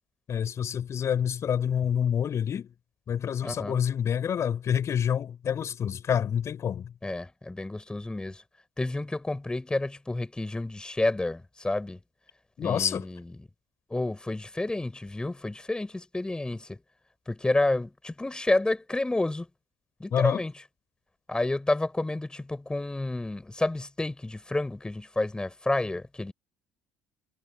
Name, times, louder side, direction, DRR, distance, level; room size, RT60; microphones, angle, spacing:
voice 1, 0.3-2.7 3.1-6.9 12.6-13.1 20.1-20.4, left 8 dB, 45° left, 6.2 m, -27 dB
voice 2, 3.4-3.8 7.0-8.4 8.8-12.0 12.6-13.3 13.9-16.8 17.3-19.5 20.0-20.5 21.3-26.3, left 2 dB, 10° left, 6.7 m, -30 dB
hypercardioid pair, 60°, 7 cm